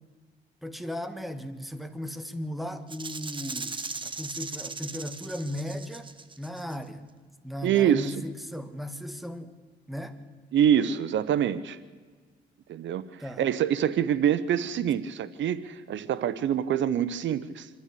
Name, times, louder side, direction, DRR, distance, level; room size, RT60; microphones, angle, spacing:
voice 1, 0.6-7.1 7.4-9.6 9.9-10.2 13.2-13.4, equal, ahead, 9 dB, 1.8 m, -36 dB
Rattle (instrument), 2.9-6.7, right 4 dB, 25° right, 1.3 m, -38 dB
voice 2, 7.6-8.3 10.5-11.8 12.7-13.1 13.4-17.7, right 9 dB, 70° right, 15 dB, 0.9 m, -25 dB
26.0 x 13.0 x 8.4 m, 1.5 s
cardioid pair, 90°, 20 cm